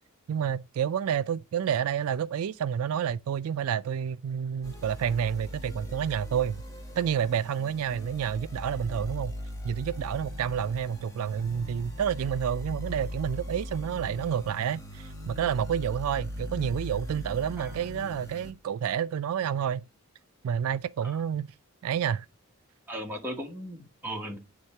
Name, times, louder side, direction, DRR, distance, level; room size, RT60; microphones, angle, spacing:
voice 1, 0.3-6.6 7.0-9.3 9.6-19.9 20.4-21.5 21.8-22.3, right 8 dB, 85° right, 0.3 m, -29 dB
sound 1, 4.6-18.5, equal, 15° left, 1.1 m, -39 dB
voice 2, 22.9-24.4, equal, 10° right, 1.4 m, -37 dB
9.6 x 3.5 x 4.3 m
head